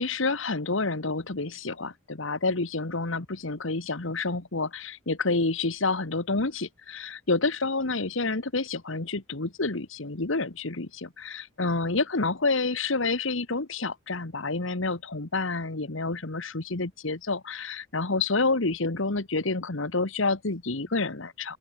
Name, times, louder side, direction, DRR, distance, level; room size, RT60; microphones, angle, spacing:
voice 1, 0.0-21.6, left 3 dB, 70° left, 1.6 m, -28 dB
open air
head